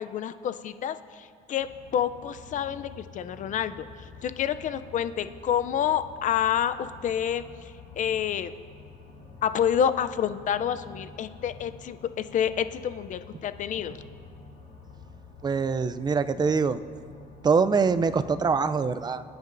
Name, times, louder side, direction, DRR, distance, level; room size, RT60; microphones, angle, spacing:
voice 1, 0.0-3.8 4.2-7.4 8.0-8.5 9.4-14.0, left 9 dB, 50° left, 12 dB, 0.5 m, -28 dB
sound 1, 1.6-18.9, left 4 dB, 65° left, 2.9 m, -48 dB
voice 2, 15.4-16.8 17.4-19.2, right 5 dB, 25° right, 12 dB, 0.4 m, -24 dB
21.5 x 9.5 x 2.6 m, 2.5 s
cardioid pair, 110°, 17 cm